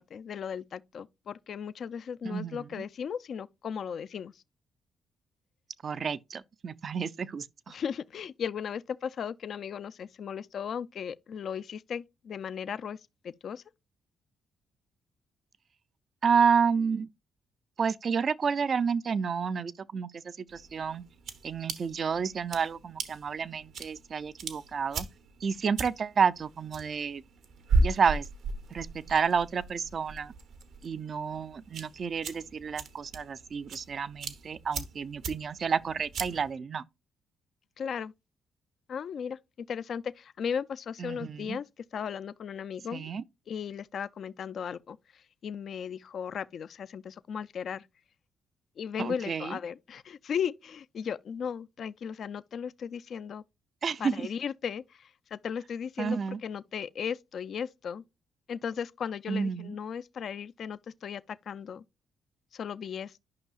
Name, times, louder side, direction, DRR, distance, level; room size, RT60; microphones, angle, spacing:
voice 1, 0.1-4.4 7.7-13.0 13.2-13.6 37.8-38.1 38.9-39.4 39.7-41.6 41.9-43.1 43.5-47.9 48.8-53.4 54.0-58.0 58.5-61.8 62.5-63.2, left 7 dB, 60° left, 0.3 m, -36 dB
voice 2, 2.2-2.6 5.8-7.7 16.2-17.1 17.8-21.0 21.4-25.1 25.4-27.2 27.8-28.3 28.7-30.3 30.8-36.8 41.0-41.6 42.9-43.2 49.0-49.6 53.8-54.3 56.0-56.4 59.3-59.7, right 6 dB, 45° right, 0.4 m, -30 dB
sound 1, 20.5-36.5, right 3 dB, 70° right, 1.0 m, -36 dB
10.5 x 5.4 x 2.4 m
cardioid pair, 90°, 0 cm